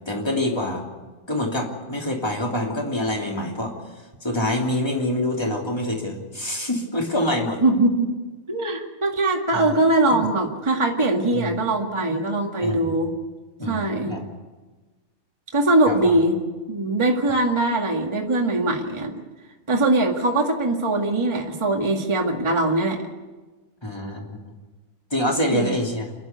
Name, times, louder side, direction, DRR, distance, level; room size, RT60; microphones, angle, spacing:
voice 1, 0.1-0.8 1.3-3.7 4.2-7.6 9.5-9.7 11.3-11.5 12.6-12.9 13.6-14.2 15.9-16.1 23.8-24.4 25.1-26.1, left 1 dB, 10° left, 0 dB, 2.3 m, -26 dB
voice 2, 7.6-8.1 8.5-13.1 13.6-14.2 15.5-16.4 16.7-19.1 19.7-23.0 25.5-25.8, right 2 dB, 25° right, 1 dB, 0.5 m, -21 dB
28.5 x 11.5 x 8.2 m, 1.3 s
omnidirectional pair, 4.4 m